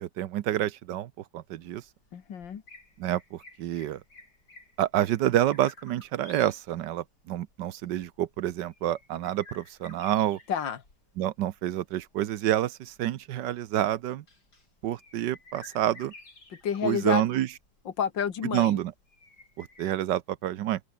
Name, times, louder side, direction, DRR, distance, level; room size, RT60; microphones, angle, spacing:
voice 1, 0.0-1.8 3.0-4.0 4.8-10.4 11.2-14.2 14.8-16.1 16.8-17.5 18.5-18.9 19.6-20.8, right 12 dB, 75° right, 1.4 m, -28 dB
sound 1, 1.5-19.9, left 2 dB, 60° left, 6.6 m, -54 dB
voice 2, 2.1-2.6 10.5-10.8 16.5-17.2 17.9-18.8, left 8 dB, 80° left, 2.4 m, -30 dB
open air
omnidirectional pair, 2.0 m